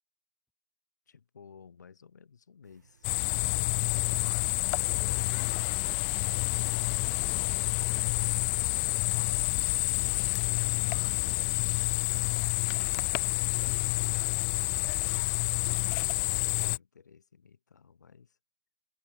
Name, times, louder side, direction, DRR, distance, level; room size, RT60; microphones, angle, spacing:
voice 1, 1.1-3.1 5.1-5.8 10.1-18.4, left 6 dB, 90° left, 4.3 m, -56 dB
sound 1, 2.6-16.8, right 7 dB, 80° right, 6.5 m, -59 dB
sound 2, 3.0-16.8, left 40 dB or more, 40° left, 0.4 m, -28 dB
voice 2, 3.4-3.5, left 3 dB, 10° left, 5.7 m, -61 dB
hypercardioid pair, 130°, 9 cm